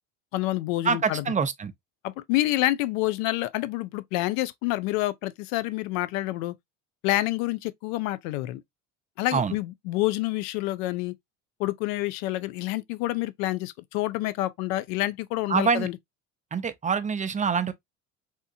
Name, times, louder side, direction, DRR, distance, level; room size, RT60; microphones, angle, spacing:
voice 1, 0.3-1.3 2.0-6.5 7.0-8.6 9.2-11.1 11.6-16.0, left 17 dB, 85° left, 0.5 m, -28 dB
voice 2, 0.8-1.7 9.3-9.5 15.5-15.9 16.5-17.7, right 5 dB, 20° right, 0.5 m, -25 dB
3.5 x 2.8 x 2.6 m
supercardioid pair, 85°, 40 cm